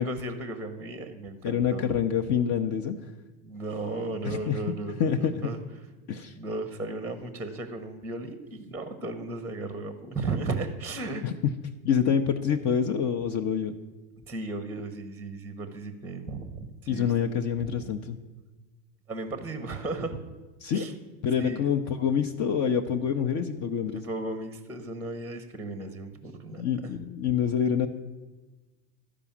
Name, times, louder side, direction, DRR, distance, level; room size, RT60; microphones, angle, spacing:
voice 1, 0.0-2.0 3.4-5.6 6.3-11.2 14.3-17.1 17.6-17.9 19.1-20.2 20.7-20.9 21.3-21.6 23.9-27.0, right 2 dB, 5° right, 9 dB, 0.7 m, -35 dB
voice 2, 1.4-3.0 4.2-4.6 5.0-5.5 6.1-6.3 11.2-11.5 11.8-13.8 16.9-18.2 20.6-20.9 21.2-24.0 26.5-27.9, left 8 dB, 35° left, 4 dB, 0.6 m, -26 dB
12.5 x 5.0 x 7.1 m, 1.2 s
hypercardioid pair, 105°, 50 cm